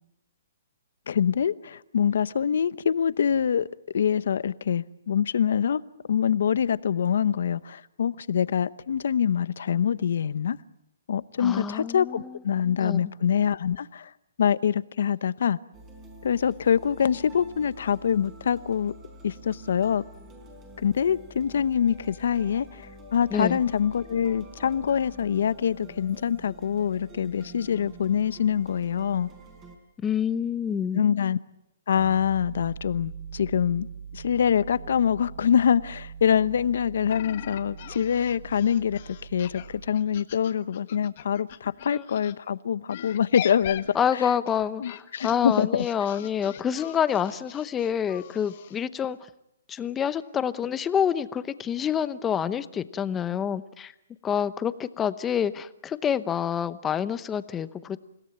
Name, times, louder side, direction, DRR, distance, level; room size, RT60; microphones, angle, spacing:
voice 1, 1.1-3.7 3.9-5.8 6.1-10.6 11.1-14.1 14.4-15.6 16.2-18.9 19.2-20.0 20.8-29.3 30.9-31.4 31.9-33.9 34.1-39.0 39.3-43.9 44.8-45.8, left 8 dB, 70° left, 0.9 m, -25 dB
voice 2, 11.4-12.4 12.8-13.0 23.3-23.6 30.0-31.1 41.9-42.0 43.9-49.2 49.7-53.9 54.2-58.0, left 8 dB, 15° left, 0.8 m, -27 dB
sound 1, 15.7-29.8, right 1 dB, 20° right, 4.5 m, -47 dB
sound 2, 31.9-39.9, right 7 dB, 55° right, 6.2 m, -42 dB
sound 3, 37.1-42.3 42.9-48.8, left 12 dB, 45° left, 1.4 m, -41 dB
29.0 x 17.5 x 8.8 m
hypercardioid pair, 155°, 0 cm